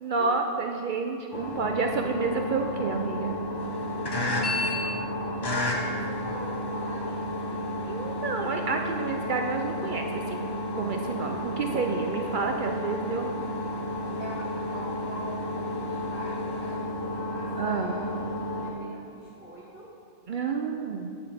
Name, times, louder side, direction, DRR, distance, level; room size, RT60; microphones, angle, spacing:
voice 1, 0.0-3.4 7.9-10.5 10.7-13.3 17.6-17.9 20.3-21.1, right 4 dB, 70° right, 3 dB, 0.4 m, -29 dB
sound 1, 1.3-18.7, left 1 dB, 25° left, 0.7 m, -31 dB
voice 2, 4.3-7.6 14.2-15.5 15.8-18.2 18.6-19.9, equal, 10° right, -10 dB, 1.2 m, -43 dB
9.5 x 7.0 x 3.4 m, 2.6 s
omnidirectional pair, 1.4 m